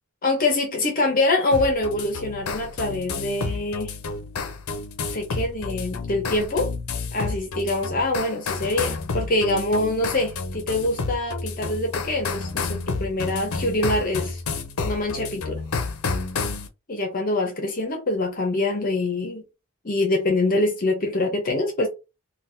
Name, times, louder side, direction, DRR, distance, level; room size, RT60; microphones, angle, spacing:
voice 1, 0.2-3.9 5.1-6.7 7.1-14.4 14.8-15.6 16.9-19.4 19.8-21.9, left 2 dB, 40° left, 0.7 m, -24 dB
sound 1, 1.5-16.7, left 4 dB, 80° left, 0.5 m, -30 dB
3.7 x 2.2 x 2.6 m
head